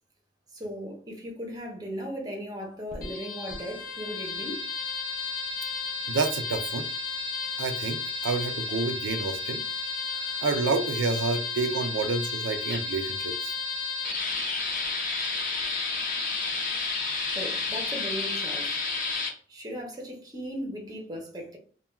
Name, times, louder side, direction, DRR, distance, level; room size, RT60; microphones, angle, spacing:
voice 1, 0.5-4.7 17.3-18.8 19.5-21.6, equal, 20° right, 0.6 m, -37 dB
sound 1, 2.9-19.3, left 4 dB, 45° left, 0.5 m, -32 dB
voice 2, 6.1-6.9 7.6-9.6 10.1-13.5, right 4 dB, 90° right, 0.4 m, -29 dB
2.2 x 2.2 x 3.0 m
head